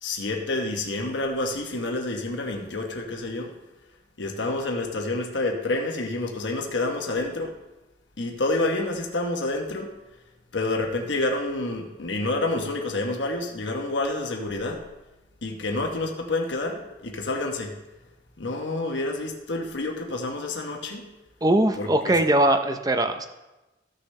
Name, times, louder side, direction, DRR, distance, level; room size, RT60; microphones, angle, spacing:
voice 1, 0.0-3.5 4.2-7.5 8.2-9.9 10.5-14.8 15.4-17.7 18.4-21.1 21.8-22.2, left 2 dB, 75° left, 2 dB, 1.1 m, -28 dB
voice 2, 21.4-23.3, right 1 dB, 20° right, 7 dB, 0.6 m, -21 dB
14.5 x 6.5 x 3.2 m, 1.0 s
head